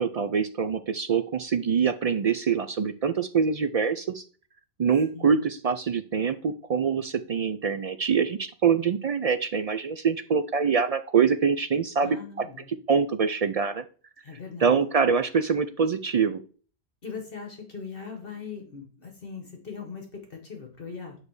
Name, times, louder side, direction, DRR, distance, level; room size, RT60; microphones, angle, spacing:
voice 1, 0.0-4.2 4.8-12.5 12.9-13.8 14.6-16.4, right 6 dB, 55° right, 10 dB, 0.4 m, -24 dB
voice 2, 12.0-12.7 14.2-14.8 17.0-21.2, left 5 dB, 60° left, 2 dB, 1.5 m, -40 dB
9.6 x 3.2 x 6.3 m, 0.41 s
omnidirectional pair, 1.1 m